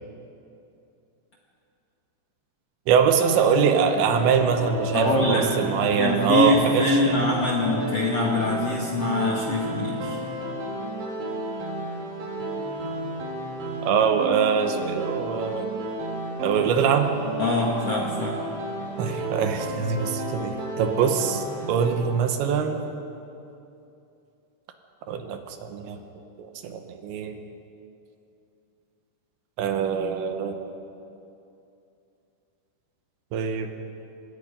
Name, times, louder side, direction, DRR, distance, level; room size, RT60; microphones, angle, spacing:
voice 1, 2.9-7.2 13.8-15.7 16.4-17.1 19.0-22.8 25.1-26.0 26.4-27.4 29.6-30.6 33.3-33.7, right 7 dB, 75° right, 6 dB, 3.3 m, -23 dB
sound 1, 3.1-21.9, right 1 dB, 55° right, 6.0 m, -32 dB
voice 2, 4.9-5.5 6.0-10.2 17.4-18.4, left 2 dB, 50° left, -3 dB, 2.0 m, -24 dB
26.5 x 20.0 x 5.3 m, 2.7 s
omnidirectional pair, 5.4 m